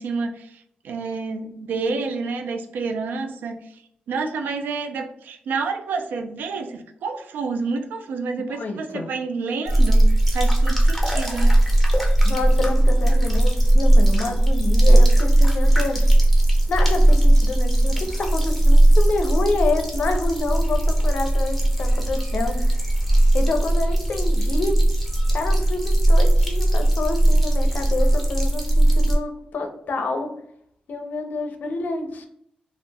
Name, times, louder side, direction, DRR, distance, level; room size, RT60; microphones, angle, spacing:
voice 1, 0.0-3.6 4.1-11.6, right 4 dB, 90° right, 6 dB, 0.3 m, -29 dB
voice 2, 8.4-9.1 12.2-16.1 16.7-22.6 23.3-24.8 25.3-30.3 30.9-32.3, left 3 dB, 65° left, 5 dB, 0.5 m, -28 dB
sound 1, 9.7-29.2, right 1 dB, ahead, 0.8 m, -18 dB
2.4 x 2.1 x 3.3 m, 0.71 s
cardioid pair, 85°, 3 cm